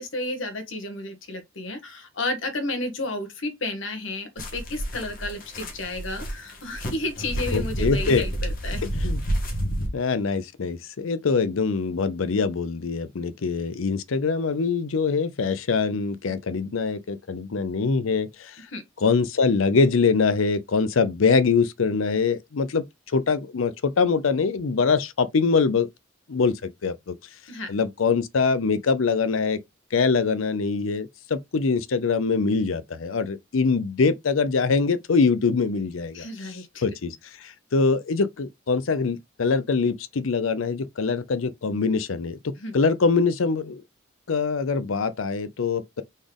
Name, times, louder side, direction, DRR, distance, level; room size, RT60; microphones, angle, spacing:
voice 1, 0.0-8.8 18.7-18.8 27.5-27.7 36.1-36.9 42.6-42.7, left 2 dB, 70° left, 1.4 m, -32 dB
sound 1, 4.4-9.9, equal, 45° left, 1.5 m, -29 dB
voice 2, 7.5-8.2 8.8-9.2 9.9-18.6 19.0-22.8 23.1-25.9 26.3-27.2 27.7-29.6 29.9-36.2 36.8-37.2 37.4-42.4 42.7-43.8 44.3-46.0, left 4 dB, 90° left, 0.6 m, -23 dB
4.2 x 3.7 x 3.4 m
head